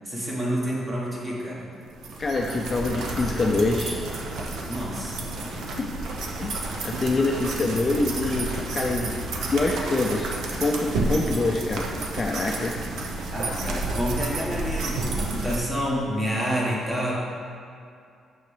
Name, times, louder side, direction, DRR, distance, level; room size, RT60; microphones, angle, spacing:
voice 1, 0.0-1.7 4.6-5.3 13.3-17.1, equal, 20° right, -5 dB, 1.5 m, -28 dB
sound 1, 1.9-15.6, right 2 dB, 70° right, 0.9 m, -31 dB
voice 2, 2.2-4.0 5.8-5.9 6.4-6.6 6.8-9.2 9.5-10.3 10.6-11.9 12.1-12.7, left 2 dB, 25° left, 0 dB, 0.5 m, -25 dB
9.2 x 6.2 x 3.4 m, 2.3 s
cardioid pair, 170°, 0 cm